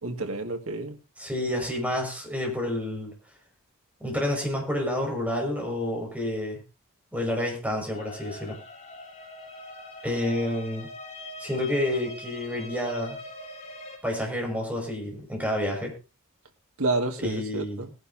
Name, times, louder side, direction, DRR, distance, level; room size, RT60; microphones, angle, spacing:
voice 1, 0.0-1.0 16.8-17.9, right 2 dB, 75° right, 2.1 m, -29 dB
voice 2, 1.2-3.1 4.0-6.6 7.1-8.6 10.0-10.9 11.4-13.2 14.0-15.9 17.2-17.9, left 1 dB, 5° right, 5.8 m, -29 dB
sound 1, 7.9-14.0, left 1 dB, 30° left, 3.9 m, -42 dB
21.0 x 11.0 x 2.8 m
head